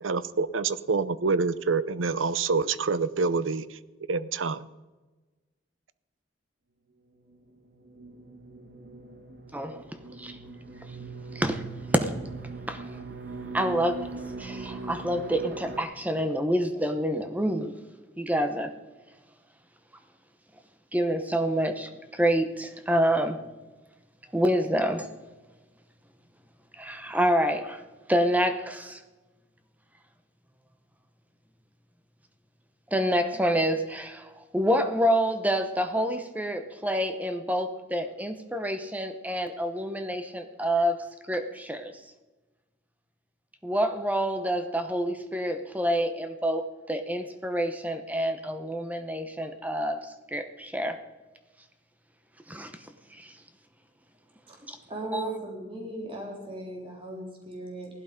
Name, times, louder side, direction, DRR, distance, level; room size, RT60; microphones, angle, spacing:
voice 1, 0.0-3.8 4.1-4.7, right 4 dB, 80° right, 16 dB, 0.7 m, -27 dB
sound 1, 7.3-15.8, right 3 dB, 55° right, 1.4 m, -40 dB
voice 2, 9.5-9.8 10.2-10.4 11.3-11.6 11.9-12.1 12.7-12.8 13.5-14.1 14.4-17.7 18.2-18.7 20.9-23.4 24.3-25.1 26.8-27.8 28.1-29.0 32.9-41.9 43.6-50.0 50.3-51.0 52.5-52.7 53.1-53.3 54.7-54.8 55.1-55.3, equal, 10° right, 8 dB, 0.9 m, -27 dB
voice 3, 54.9-57.9, right 1 dB, 25° right, 0 dB, 3.5 m, -37 dB
16.5 x 12.0 x 5.2 m, 1.2 s
head